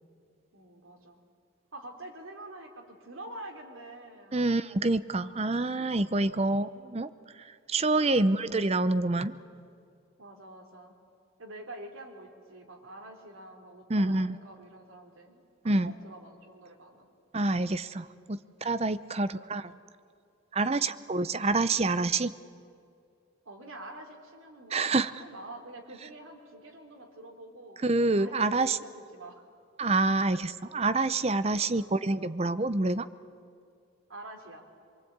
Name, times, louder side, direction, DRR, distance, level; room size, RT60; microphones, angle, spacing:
voice 1, 0.5-1.2 1.7-4.6 6.2-6.7 8.0-8.6 10.2-10.9 11.4-17.1 20.6-20.9 23.5-27.8 28.2-29.4 30.3-30.5 31.5-31.9 34.1-34.7, right 1 dB, 90° right, 2 dB, 3.4 m, -47 dB
voice 2, 4.3-7.1 7.7-9.3 13.9-14.4 15.6-15.9 17.3-19.7 20.5-22.3 24.7-25.2 27.8-28.8 29.8-33.1, right 2 dB, 30° right, 13 dB, 0.6 m, -27 dB
24.0 x 24.0 x 8.8 m, 2.4 s
head